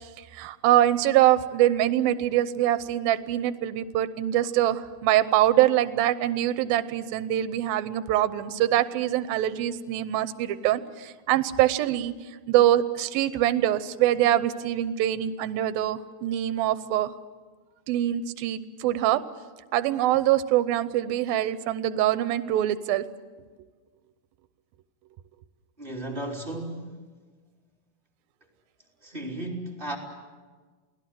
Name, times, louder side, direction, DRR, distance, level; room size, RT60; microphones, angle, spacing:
voice 1, 0.3-12.1 12.5-17.1 17.9-19.2 19.7-23.0, right 13 dB, 80° right, 13 dB, 2.6 m, -24 dB
voice 2, 25.8-27.0 29.0-30.0, right 1 dB, 15° right, -1 dB, 2.9 m, -34 dB
29.0 x 19.0 x 7.7 m, 1.4 s
omnidirectional pair, 4.2 m